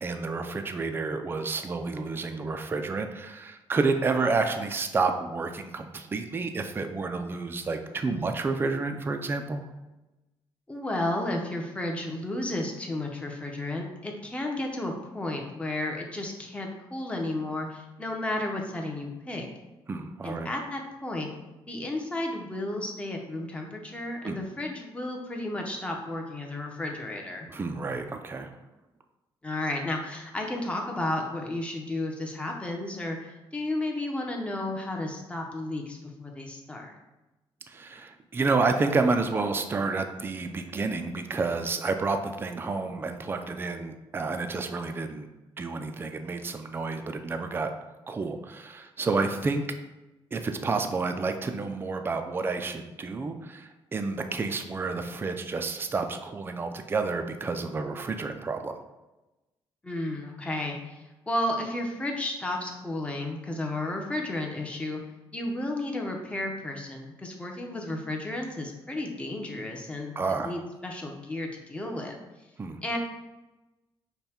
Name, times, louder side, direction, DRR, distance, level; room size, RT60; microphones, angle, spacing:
voice 1, 0.0-9.7 19.9-20.5 24.2-24.4 27.5-28.5 37.7-45.3 45.6-47.7 48.1-49.7 50.3-58.8 70.2-70.6 72.6-72.8, right 3 dB, 25° right, 6 dB, 0.4 m, -30 dB
voice 2, 10.7-19.5 20.2-21.3 21.7-27.5 29.4-36.9 59.8-65.0 65.3-70.1 70.4-72.2 72.8-73.0, left 1 dB, 10° left, 1 dB, 0.7 m, -33 dB
5.5 x 2.2 x 4.3 m, 1.0 s
cardioid pair, 130°, 10 cm